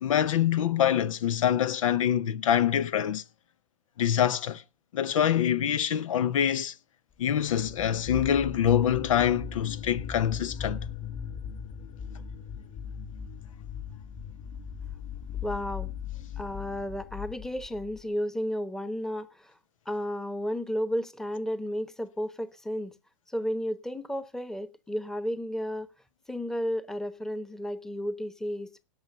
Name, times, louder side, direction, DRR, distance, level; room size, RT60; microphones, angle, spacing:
voice 1, 0.0-3.2 4.0-4.6 4.9-6.7 7.2-10.9, left 9 dB, 80° left, 0.8 m, -25 dB
sound 1, 7.5-18.0, left 6 dB, 35° left, 1.7 m, -39 dB
voice 2, 15.4-15.9 16.4-19.6 19.9-23.0 23.3-25.9 26.3-28.8, equal, 5° left, 1.0 m, -33 dB
17.0 x 6.3 x 6.8 m
hypercardioid pair, 125°, 17 cm